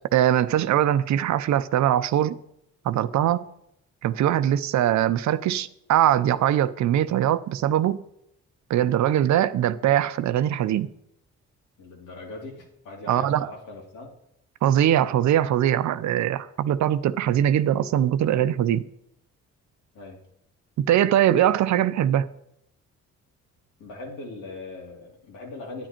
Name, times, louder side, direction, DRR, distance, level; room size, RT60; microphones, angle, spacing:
voice 1, 0.1-2.4 2.8-3.5 4.0-8.0 8.7-10.9 13.1-13.5 14.6-18.8 20.8-22.3, right 11 dB, 70° right, 0.6 m, -22 dB
voice 2, 11.8-14.1 19.9-20.2 23.8-25.9, left 2 dB, 90° left, 3.2 m, -40 dB
10.0 x 9.8 x 4.5 m
cardioid pair, 90°, 30 cm